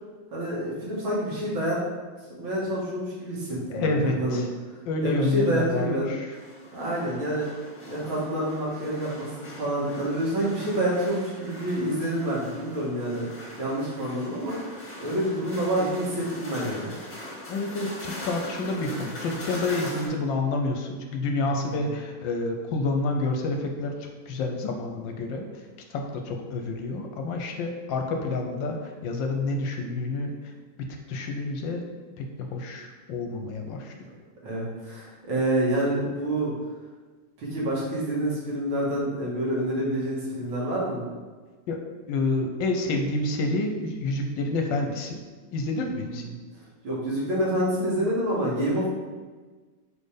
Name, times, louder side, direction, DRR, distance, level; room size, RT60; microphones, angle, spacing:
voice 1, 0.3-1.8 2.3-4.4 5.0-6.1 6.7-7.5 7.9-13.2 13.6-17.0 34.4-36.5 37.4-41.0 46.0-46.2 46.8-48.9, right 1 dB, 75° right, -6 dB, 2.6 m, -27 dB
voice 2, 3.7-4.5 4.8-6.4 17.5-24.0 24.3-25.5 25.9-30.3 30.9-31.8 32.2-33.9 41.7-41.8 42.1-45.2 45.5-46.2, left 2 dB, 75° left, 3 dB, 1.3 m, -28 dB
sound 1, 6.3-20.1, left 1 dB, 25° left, 1.4 m, -41 dB
5.2 x 4.3 x 5.0 m, 1.4 s
omnidirectional pair, 2.2 m